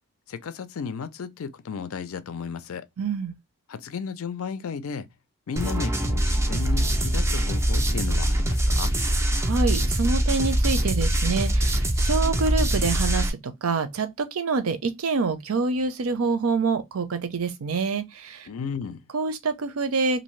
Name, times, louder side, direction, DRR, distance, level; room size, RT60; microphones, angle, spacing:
voice 1, 0.3-2.9 3.7-5.1 5.5-8.9 18.5-19.0, left 6 dB, 85° left, 0.4 m, -34 dB
voice 2, 3.0-3.4 9.4-18.5 19.1-20.2, right 4 dB, 85° right, 0.6 m, -26 dB
sound 1, 5.6-13.3, right 1 dB, 15° right, 0.3 m, -23 dB
2.6 x 2.6 x 3.1 m
head